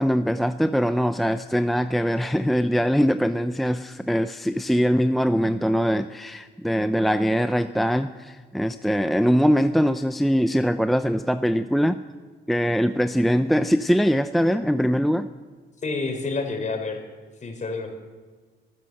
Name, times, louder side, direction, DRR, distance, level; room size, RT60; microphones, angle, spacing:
voice 1, 0.0-12.0 12.5-15.3, equal, ahead, 10 dB, 0.6 m, -22 dB
voice 2, 15.8-17.0 17.4-17.9, left 3 dB, 35° left, 5 dB, 4.6 m, -28 dB
25.0 x 13.5 x 7.9 m, 1.5 s
cardioid pair, 90°, 20 cm